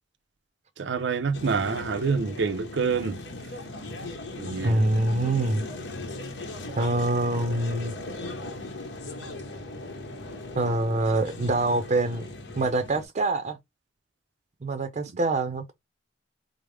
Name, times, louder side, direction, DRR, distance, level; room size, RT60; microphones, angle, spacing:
voice 1, 0.8-3.2 4.4-4.8, right 5 dB, 85° right, 0.6 m, -27 dB
sound 1, 1.3-13.0, left 2 dB, 80° left, 1.0 m, -38 dB
voice 2, 4.6-5.6 6.8-7.9 10.6-12.2 12.6-13.6 14.6-15.7, right 2 dB, 40° right, 0.5 m, -25 dB
4.8 x 2.0 x 3.3 m
head